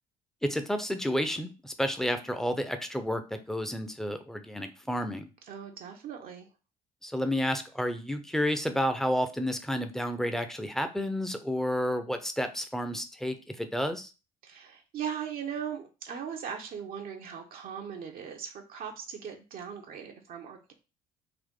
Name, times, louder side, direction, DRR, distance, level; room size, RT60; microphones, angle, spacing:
voice 1, 0.4-5.3 7.0-14.1, equal, ahead, 8 dB, 0.7 m, -31 dB
voice 2, 5.5-6.5 14.4-20.7, right 8 dB, 55° right, 2 dB, 0.8 m, -39 dB
3.9 x 2.5 x 3.6 m, 0.31 s
hypercardioid pair, 60°, 18 cm